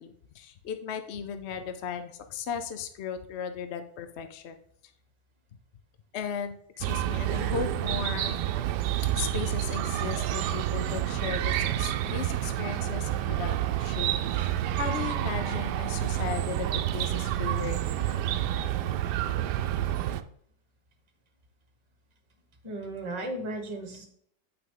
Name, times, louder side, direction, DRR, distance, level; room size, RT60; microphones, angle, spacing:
voice 1, 0.0-4.6 6.1-8.4 9.1-18.2, left 7 dB, 60° left, 7 dB, 0.7 m, -36 dB
Chirp tweet, 6.8-20.2, right 12 dB, 85° right, 1.2 m, -29 dB
voice 2, 22.6-24.0, right 1 dB, 20° right, 3 dB, 1.2 m, -37 dB
9.1 x 5.8 x 3.8 m, 0.67 s
omnidirectional pair, 1.8 m